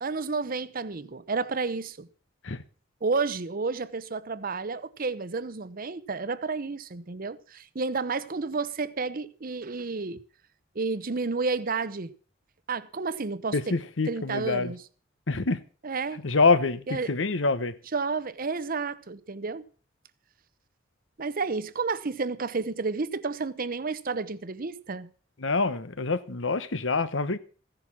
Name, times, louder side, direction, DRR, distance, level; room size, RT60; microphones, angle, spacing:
voice 1, 0.0-2.1 3.0-10.2 10.7-12.1 12.7-13.8 14.1-14.8 15.8-16.2 16.9-17.1 17.9-19.6 21.2-25.1, right 4 dB, 45° right, 0.8 m, -31 dB
voice 2, 13.5-14.7 15.3-15.6 16.2-17.7 25.4-27.4, left 3 dB, 70° left, 1.1 m, -26 dB
15.5 x 10.5 x 5.9 m
head